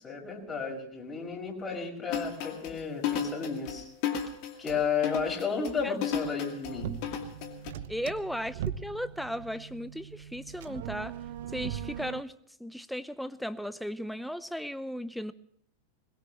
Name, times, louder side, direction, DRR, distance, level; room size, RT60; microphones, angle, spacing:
voice 1, 0.0-3.9 4.6-6.9, left 5 dB, 20° left, 0 dB, 5.7 m, -33 dB
sound 1, 2.1-7.7, left 8 dB, 45° left, 2.3 m, -34 dB
sound 2, 6.7-12.2, right 10 dB, 55° right, 0.9 m, -40 dB
voice 2, 7.9-11.2 11.5-12.3 12.6-15.3, equal, ahead, 14 dB, 0.8 m, -36 dB
21.5 x 21.0 x 3.1 m, 0.67 s
figure-of-eight pair, 90°, 0 cm